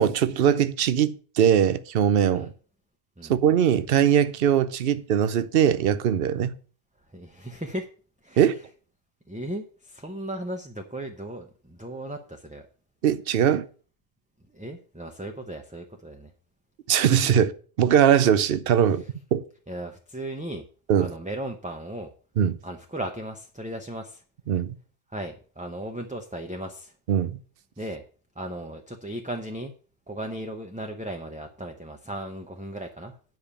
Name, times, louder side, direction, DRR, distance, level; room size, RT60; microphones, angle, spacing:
voice 1, 0.0-2.5 3.3-6.6 8.4-8.6 13.0-13.6 16.9-17.5 17.8-19.0 19.3-19.4 20.9-21.1 22.4-22.6 24.5-24.8 27.1-27.4, right 9 dB, 60° right, 0.8 m, -21 dB
voice 2, 7.1-7.9 8.2-8.5 9.3-12.6 14.5-16.3 17.3-17.4 19.7-20.7 21.0-22.1 22.6-24.2 25.1-26.9 27.8-28.0 28.4-29.7 30.1-33.1, right 1 dB, 10° right, 0.7 m, -36 dB
9.5 x 5.1 x 6.9 m
omnidirectional pair, 1.2 m